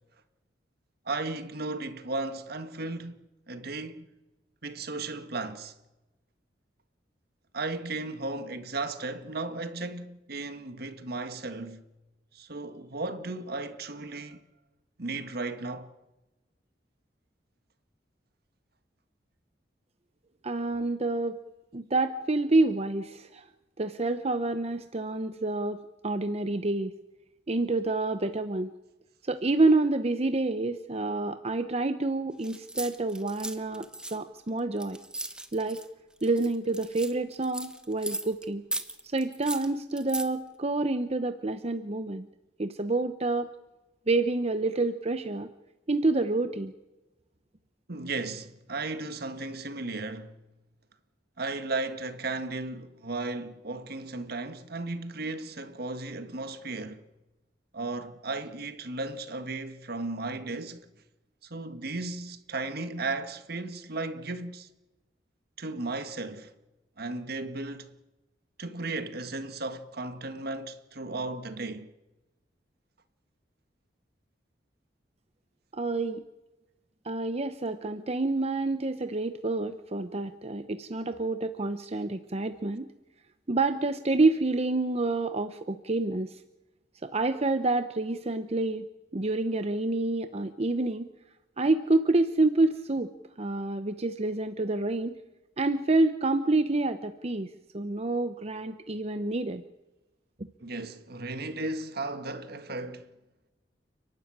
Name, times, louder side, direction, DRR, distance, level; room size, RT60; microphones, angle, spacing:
voice 1, 1.0-4.1 4.6-5.7 7.5-11.8 12.3-14.4 15.0-15.9 47.9-50.3 51.4-57.1 57.7-60.9 61.4-64.7 65.6-66.5 67.0-67.9 68.6-71.9 100.6-103.1, right 3 dB, 60° right, 1.7 m, -35 dB
voice 2, 20.4-21.4 21.7-23.4 23.8-26.9 27.5-28.7 29.2-35.0 35.5-35.8 36.2-38.6 39.0-42.3 42.6-43.5 44.1-45.5 45.9-46.7 75.7-76.2 77.0-82.9 83.5-86.4 87.0-88.9 89.1-91.1 91.6-93.1 93.4-95.1 95.6-99.6, right 2 dB, 35° right, 0.9 m, -28 dB
sound 1, 32.4-35.9 36.2-38.4 38.7-40.3, right 2 dB, 5° right, 1.4 m, -37 dB
30.0 x 12.5 x 9.7 m
head